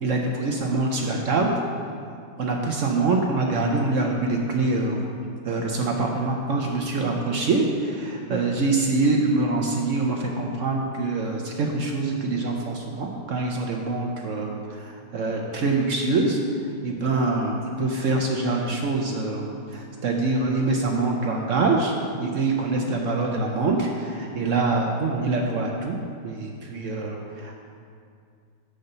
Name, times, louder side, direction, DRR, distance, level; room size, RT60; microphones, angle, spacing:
voice 1, 0.0-1.5 2.4-5.1 5.4-16.4 16.8-21.9 22.2-26.0 26.2-27.5, right 3 dB, 65° right, 1 dB, 0.8 m, -25 dB
6.7 x 5.6 x 6.6 m, 2.3 s
omnidirectional pair, 2.0 m